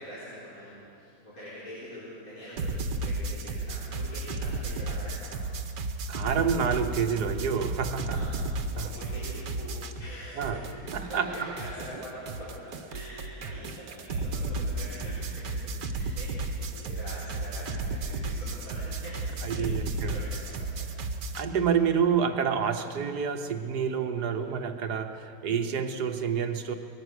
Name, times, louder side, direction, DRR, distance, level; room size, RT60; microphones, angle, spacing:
voice 1, 0.0-5.4 8.0-19.8 20.1-20.6 24.1-24.4, equal, 55° left, -10 dB, 5.0 m, -44 dB
sound 1, 2.6-10.2 10.4-21.5, right 3 dB, 85° right, 1.8 m, -33 dB
voice 2, 6.1-8.2 8.8-8.9 10.4-10.6 10.9-11.5 19.4-20.2 21.4-26.7, right 7 dB, 70° right, 6 dB, 1.6 m, -28 dB
23.5 x 20.0 x 6.6 m, 2.5 s
omnidirectional pair, 1.8 m